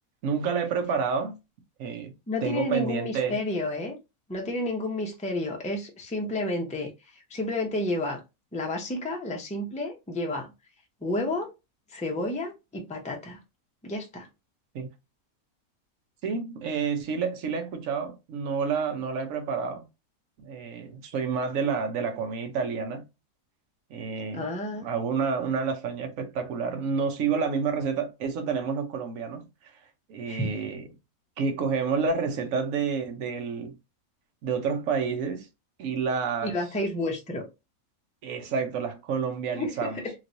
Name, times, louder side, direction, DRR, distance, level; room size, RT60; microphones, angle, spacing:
voice 1, 0.2-1.3 1.8-2.1 2.4-3.4 14.7-14.9 16.2-19.8 20.4-23.0 23.9-24.5 24.8-29.8 30.1-30.9 31.4-33.8 34.4-35.5 35.8-36.6 38.2-40.0, right 5 dB, 65° right, 1.1 m, -29 dB
voice 2, 2.3-4.0 4.3-8.2 8.5-10.5 11.0-11.5 11.9-13.4 13.8-14.3 24.3-24.9 30.3-30.5 36.4-37.4 39.5-40.1, left 1 dB, 10° left, 0.4 m, -31 dB
3.1 x 2.9 x 2.6 m
omnidirectional pair, 1.6 m